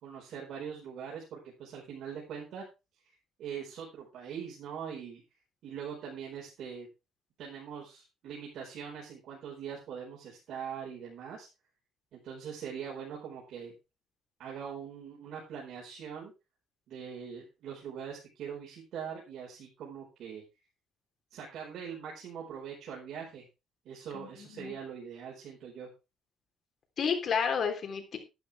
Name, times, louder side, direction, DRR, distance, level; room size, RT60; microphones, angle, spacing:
voice 1, 0.0-2.6 3.0-3.1 3.4-5.2 5.6-6.9 7.4-11.5 12.1-13.7 14.4-16.3 16.9-20.4 21.3-23.4 23.8-25.9, right 7 dB, 60° right, -4 dB, 4.8 m, -42 dB
voice 2, 24.1-24.8 27.0-28.2, left 6 dB, 40° left, 4 dB, 3.3 m, -31 dB
11.5 x 11.5 x 3.5 m, 0.27 s
cardioid pair, 165°, 0 cm